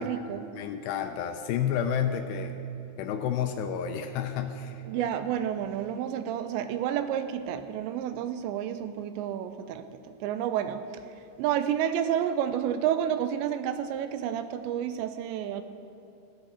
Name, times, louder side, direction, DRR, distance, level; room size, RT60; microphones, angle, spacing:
voice 1, 0.0-0.5 4.9-9.8 10.2-10.8 11.4-15.6, right 10 dB, 85° right, 10 dB, 2.8 m, -30 dB
voice 2, 0.5-2.5 3.0-5.1, left 8 dB, 80° left, 7 dB, 2.6 m, -30 dB
16.5 x 11.5 x 4.3 m, 2.7 s
omnidirectional pair, 5.1 m